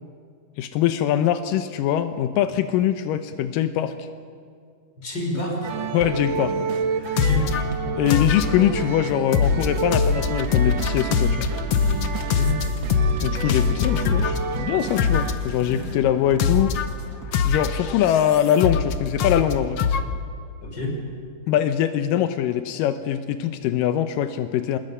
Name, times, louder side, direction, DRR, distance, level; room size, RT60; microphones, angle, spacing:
voice 1, 0.6-4.1 5.9-6.7 7.9-11.5 13.2-16.8 17.5-19.8 21.5-24.8, left 10 dB, 85° left, 9 dB, 2.5 m, -23 dB
voice 2, 5.0-5.7 7.0-7.6 12.2-12.6 15.7-16.0 20.6-21.0, left 1 dB, 30° left, 0 dB, 5.3 m, -29 dB
sound 1, 5.6-15.3, right 5 dB, 65° right, 1.2 m, -30 dB
sound 2, 7.2-7.6 8.1-8.8 9.3-14.4 15.0-15.5 16.4-16.9 17.3-18.9 19.2-20.0, left 6 dB, 70° left, 1.5 m, -22 dB
sound 3, 13.2-17.6, right 3 dB, 35° right, 2.0 m, -41 dB
26.5 x 21.0 x 5.6 m, 2.2 s
omnidirectional pair, 3.8 m